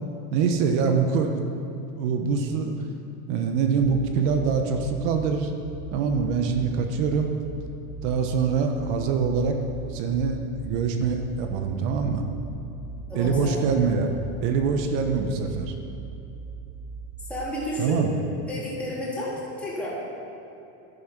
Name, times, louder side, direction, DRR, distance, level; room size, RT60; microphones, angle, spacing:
voice 1, 0.3-1.4 2.0-2.8 3.3-5.5 5.9-7.3 8.0-9.6 9.9-10.4 10.7-12.3 13.1-14.1 14.4-15.7 17.8-18.1, right 5 dB, 55° right, 5 dB, 1.1 m, -24 dB
sound 1, 3.8-17.5, right 5 dB, 90° right, 1.1 m, -40 dB
voice 2, 13.1-13.5 17.3-18.0 18.5-19.9, left 1 dB, 5° left, -8 dB, 3.2 m, -31 dB
11.0 x 10.5 x 6.0 m, 2.9 s
supercardioid pair, 160°, 42 cm